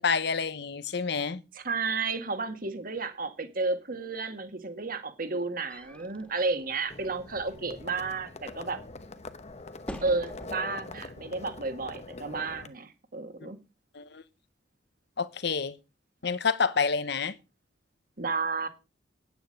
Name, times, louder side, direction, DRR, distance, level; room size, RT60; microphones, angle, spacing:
voice 1, 0.0-1.4 13.4-13.5 13.9-14.2 15.2-15.8 16.2-17.3, left 5 dB, 65° left, 1.0 m, -28 dB
voice 2, 1.5-8.8 10.0-13.6 18.2-18.7, right 3 dB, 50° right, 1.8 m, -32 dB
sound 1, 5.7-10.8, equal, 5° left, 1.7 m, -48 dB
Livestock farm animals working animals, 6.9-12.7, left 3 dB, 40° left, 0.9 m, -44 dB
9.5 x 9.4 x 5.2 m
head